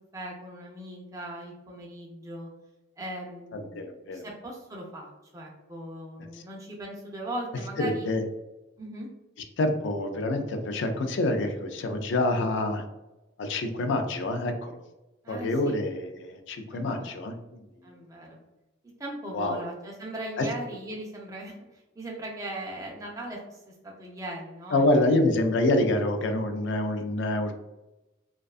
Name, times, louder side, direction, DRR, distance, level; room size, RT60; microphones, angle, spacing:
voice 1, 0.1-2.5 3.0-3.8 4.1-8.1 8.8-9.1 15.2-15.7 16.7-17.3 17.8-18.4 19.0-25.2, right 1 dB, 15° right, -2 dB, 0.4 m, -39 dB
voice 2, 3.5-4.3 6.3-6.4 7.8-8.2 9.6-12.8 13.4-14.8 15.3-17.6 19.3-19.6 20.4-20.5 24.7-27.5, left 2 dB, 60° left, 6 dB, 0.3 m, -27 dB
2.5 x 2.2 x 2.3 m, 1.0 s
head